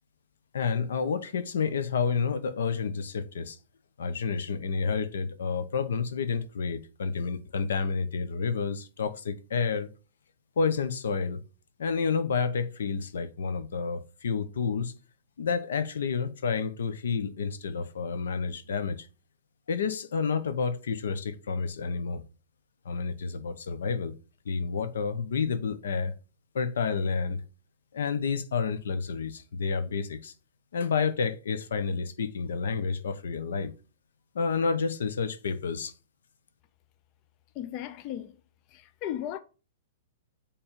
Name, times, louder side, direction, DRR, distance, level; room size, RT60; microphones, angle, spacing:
voice 1, 0.5-3.6 4.0-9.9 10.6-11.4 11.8-14.9 15.4-19.1 19.7-22.2 22.8-24.2 24.4-26.1 26.5-27.4 27.9-30.3 30.7-33.7 34.3-35.9, left 5 dB, 90° left, 0.9 m, -30 dB
voice 2, 37.5-38.4 38.7-39.4, left 11 dB, 35° left, 0.5 m, -36 dB
7.4 x 3.4 x 5.1 m
hypercardioid pair, 160°, 0 cm